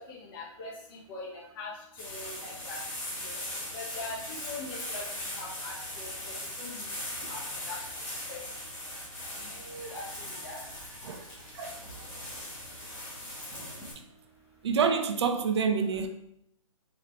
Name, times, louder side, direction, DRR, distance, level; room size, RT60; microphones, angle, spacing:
voice 1, 0.3-0.7 1.1-1.3 1.6-1.7 2.0-2.8 3.2-3.4 3.7-5.0 5.4-6.1 6.6-6.9 7.3-7.4 7.7-7.8 8.3-8.4 9.5-10.0 10.4-10.6, left 3 dB, 40° left, 1.4 m, -41 dB
sound 1, 2.0-13.9, left 1 dB, 15° left, 1.3 m, -39 dB
voice 2, 14.6-16.1, right 6 dB, 50° right, 0.5 m, -27 dB
3.9 x 2.8 x 3.2 m
hypercardioid pair, 140°, 18 cm